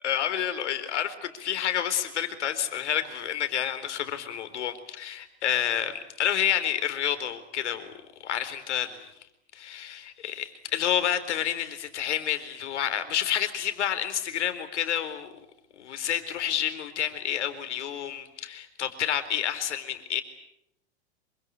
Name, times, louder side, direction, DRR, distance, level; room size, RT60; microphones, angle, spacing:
voice 1, 0.0-7.9 8.2-9.1 9.5-15.3 15.8-20.2, left 10 dB, 75° left, 10 dB, 4.1 m, -29 dB
26.5 x 25.0 x 8.7 m, 0.84 s
hypercardioid pair, 95°, 35 cm